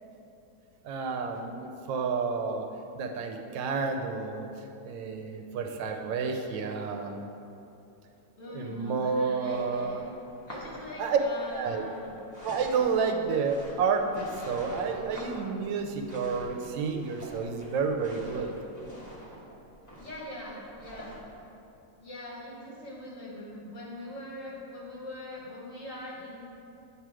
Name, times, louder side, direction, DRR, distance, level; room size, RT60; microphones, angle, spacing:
voice 1, 0.8-2.7 3.0-4.5 4.8-7.2 8.5-10.1 11.0-11.2 11.5-11.8 12.4-18.5, right 5 dB, 85° right, 4 dB, 1.3 m, -30 dB
voice 2, 8.4-10.0 10.5-12.1 20.0-21.1 22.0-26.4, left 1 dB, 45° left, -5 dB, 1.4 m, -42 dB
sound 1, 9.4-21.3, equal, 15° left, 0.7 m, -46 dB
8.8 x 3.1 x 4.7 m, 2.9 s
omnidirectional pair, 2.0 m